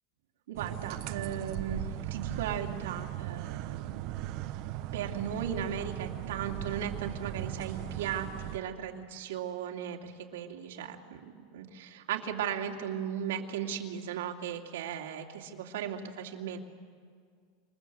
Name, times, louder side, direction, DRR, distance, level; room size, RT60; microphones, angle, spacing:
voice 1, 0.5-4.3 4.9-11.0 11.5-16.6, right 8 dB, 90° right, 1 dB, 2.8 m, -36 dB
sound 1, 0.6-8.6, right 13 dB, 55° right, 1.2 m, -38 dB
27.5 x 27.5 x 8.0 m, 2.1 s
supercardioid pair, 140°, 0 cm